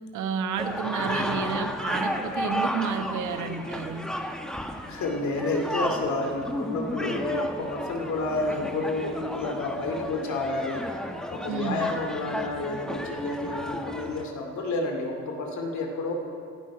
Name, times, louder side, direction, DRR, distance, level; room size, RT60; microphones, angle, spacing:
voice 1, 0.1-4.1 11.5-11.9, right 6 dB, 80° right, 8 dB, 1.1 m, -31 dB
sound 1, 0.6-14.2, equal, ahead, 1.0 m, -33 dB
voice 2, 1.0-1.5 4.9-10.9 11.3-16.1, left 2 dB, 70° left, 2 dB, 2.4 m, -30 dB
16.0 x 12.0 x 4.9 m, 2.4 s
cardioid pair, 90°, 30 cm